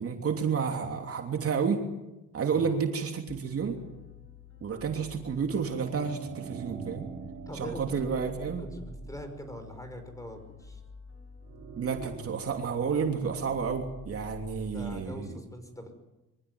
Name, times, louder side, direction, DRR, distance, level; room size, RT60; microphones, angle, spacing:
voice 1, 0.0-1.8 2.3-3.8 4.6-7.1 7.5-8.6 11.8-15.4, right 6 dB, 50° right, 3 dB, 3.1 m, -30 dB
sound 1, 3.3-15.0, left 1 dB, 45° left, 6.3 m, -49 dB
sound 2, 5.7-9.6 11.4-12.1, right 6 dB, 80° right, 3.8 m, -44 dB
voice 2, 7.5-8.1 8.6-10.8 14.5-15.9, equal, 10° left, 7 dB, 5.7 m, -43 dB
24.5 x 15.5 x 9.8 m, 0.99 s
cardioid pair, 90°, 30 cm